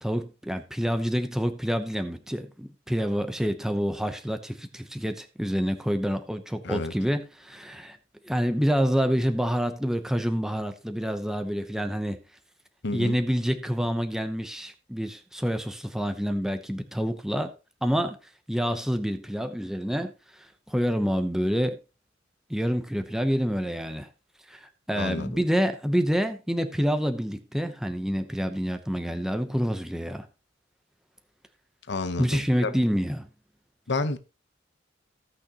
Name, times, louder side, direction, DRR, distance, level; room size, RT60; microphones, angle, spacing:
voice 1, 0.0-8.0 8.2-12.2 12.9-17.5 17.8-18.2 18.5-21.8 22.5-24.1 24.5-30.3 32.2-33.3, equal, 5° right, 0.7 m, -27 dB
voice 2, 12.8-13.2 24.9-25.3 31.9-32.7 33.9-34.2, left 3 dB, 60° left, 0.9 m, -30 dB
16.5 x 6.3 x 2.9 m
head